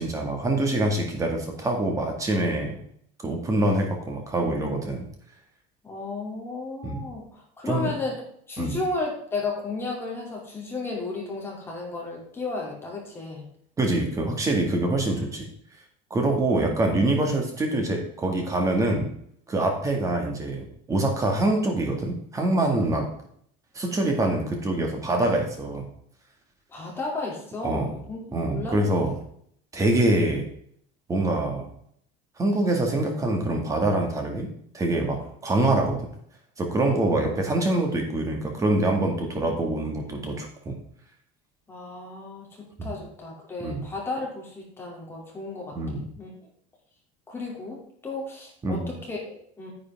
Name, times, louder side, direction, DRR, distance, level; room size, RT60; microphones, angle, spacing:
voice 1, 0.0-2.8 3.2-5.1 6.8-7.0 7.6-7.9 8.6-8.8 13.8-15.5 16.1-19.1 19.5-23.1 23.8-25.9 27.6-27.9 28.3-29.2 29.7-30.5 31.1-31.7 32.4-34.5 34.7-36.0 36.6-40.7 42.8-42.9 43.6-43.8 45.7-46.0 48.6-48.9, right 2 dB, 15° right, 2 dB, 1.9 m, -25 dB
voice 2, 5.8-8.2 8.5-13.4 16.5-16.7 26.7-28.2 28.5-28.9 41.7-46.3 47.3-49.7, left 3 dB, 15° left, -3 dB, 2.8 m, -33 dB
9.9 x 8.4 x 3.6 m, 0.65 s
cardioid pair, 165°, 18 cm